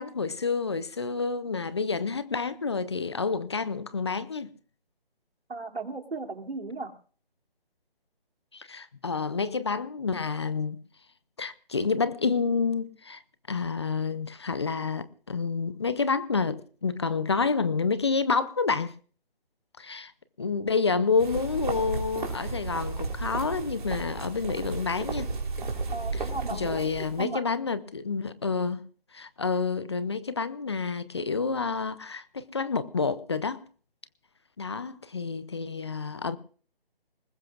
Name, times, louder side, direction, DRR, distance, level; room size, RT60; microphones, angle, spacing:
voice 1, 0.0-4.5 8.5-10.8 11.4-13.2 13.5-18.9 19.8-20.1 20.4-25.3 26.5-28.8 29.1-33.6 34.6-36.4, left 4 dB, 25° left, 0.6 m, -29 dB
voice 2, 5.5-6.9 25.9-27.5, right 3 dB, 90° right, 2.9 m, -36 dB
Ronda - Steps in the stone - Pasos sobre piedra, 21.2-27.2, right 3 dB, 50° right, 3.6 m, -33 dB
22.5 x 20.0 x 2.4 m
figure-of-eight pair, 155°, 30 cm